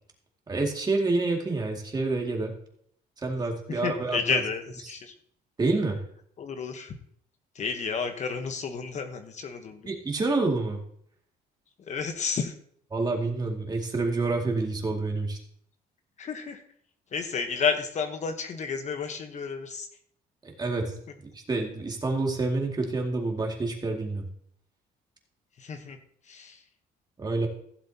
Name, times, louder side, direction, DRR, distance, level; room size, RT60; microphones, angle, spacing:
voice 1, 0.5-2.5 3.2-4.4 5.6-6.0 9.8-10.8 12.9-15.4 20.4-21.0 21.3-24.3 27.2-27.5, right 3 dB, 25° right, 1 dB, 2.2 m, -28 dB
voice 2, 3.7-5.1 6.4-7.0 7.5-9.9 11.9-12.5 16.2-16.6 17.1-19.9 25.6-26.0 26.3-26.6, left 5 dB, 45° left, 7 dB, 1.1 m, -31 dB
15.5 x 7.6 x 2.8 m, 0.63 s
cardioid pair, 110°, 17 cm